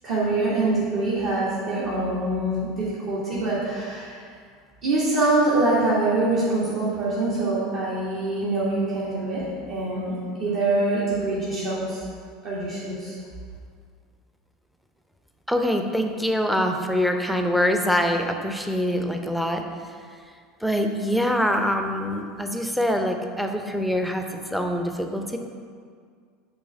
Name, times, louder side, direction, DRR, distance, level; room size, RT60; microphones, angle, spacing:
voice 1, 0.0-4.2 4.8-12.0 12.4-13.2, right 2 dB, 50° right, -9 dB, 1.4 m, -24 dB
voice 2, 15.5-19.6 20.6-25.4, equal, ahead, 4 dB, 0.6 m, -24 dB
8.7 x 3.4 x 5.2 m, 2.1 s
figure-of-eight pair, 75°, 0 cm